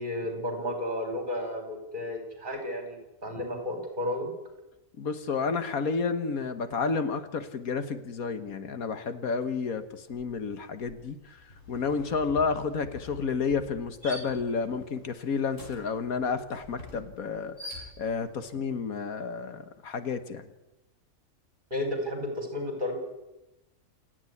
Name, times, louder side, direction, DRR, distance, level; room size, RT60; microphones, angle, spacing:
voice 1, 0.0-4.3 21.7-23.0, left 1 dB, 35° right, 4 dB, 5.2 m, -32 dB
voice 2, 5.0-11.4 11.7-20.5, left 5 dB, 75° left, 10 dB, 1.8 m, -31 dB
sound 1, 9.4-9.6 9.9-18.4, left 1 dB, 60° left, 5.8 m, -47 dB
28.0 x 9.7 x 9.8 m, 0.97 s
omnidirectional pair, 1.5 m